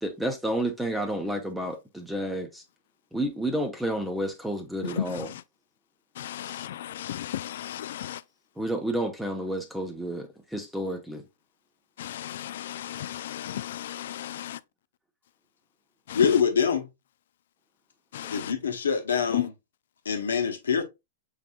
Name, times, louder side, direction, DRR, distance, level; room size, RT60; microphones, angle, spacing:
voice 1, 0.0-2.6 3.1-5.3 6.4-6.7 8.6-11.2, right 1 dB, 5° right, 0.8 m, -30 dB
voice 2, 4.8-5.4 6.2-8.2 12.0-14.6 16.1-16.4 18.1-18.5 19.3-19.5, left 12 dB, 65° left, 0.3 m, -34 dB
voice 3, 16.1-16.9 18.3-19.5 20.0-20.8, left 6 dB, 85° left, 1.1 m, -24 dB
5.9 x 3.7 x 2.3 m
hypercardioid pair, 115°, 0 cm